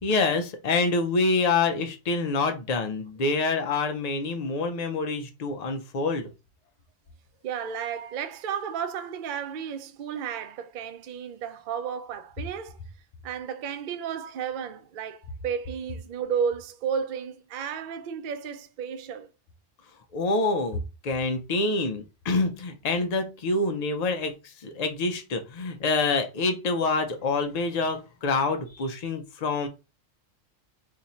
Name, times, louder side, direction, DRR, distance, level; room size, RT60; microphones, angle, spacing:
voice 1, 0.0-6.3 20.1-29.7, left 3 dB, 90° left, 0.3 m, -26 dB
voice 2, 7.4-12.8 13.2-19.3, right 7 dB, 70° right, 0.4 m, -33 dB
2.7 x 2.4 x 4.1 m
omnidirectional pair, 1.3 m